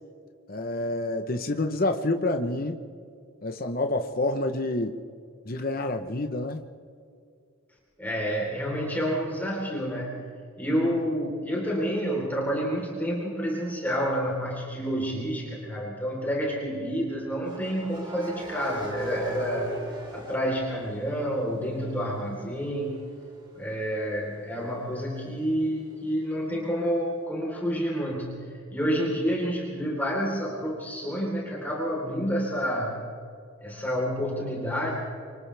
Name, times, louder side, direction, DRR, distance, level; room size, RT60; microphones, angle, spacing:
voice 1, 0.5-2.8 3.4-5.0 5.4-6.6, left 2 dB, 45° left, 5 dB, 1.0 m, -28 dB
voice 2, 8.0-10.2 10.6-19.8 20.1-23.0 23.6-28.4 28.7-32.9 33.6-34.9, equal, 10° left, -3 dB, 3.9 m, -29 dB
sound 1, 14.1-14.3 17.4-21.3 21.7-25.3, right 1 dB, 20° right, 2.7 m, -41 dB
29.0 x 25.5 x 3.5 m, 2.3 s
head